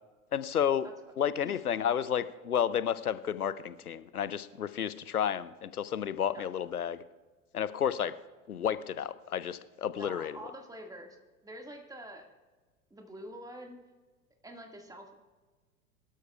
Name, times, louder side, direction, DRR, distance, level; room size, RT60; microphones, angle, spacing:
voice 1, 0.3-0.9 1.2-7.0 7.5-8.1 8.5-10.4, left 9 dB, 85° left, 15 dB, 0.7 m, -31 dB
voice 2, 9.9-11.2 11.4-12.3 12.9-13.8 14.4-15.1, right 1 dB, 10° right, 3 dB, 2.0 m, -46 dB
23.0 x 12.5 x 2.4 m, 1.3 s
figure-of-eight pair, 85°, 43 cm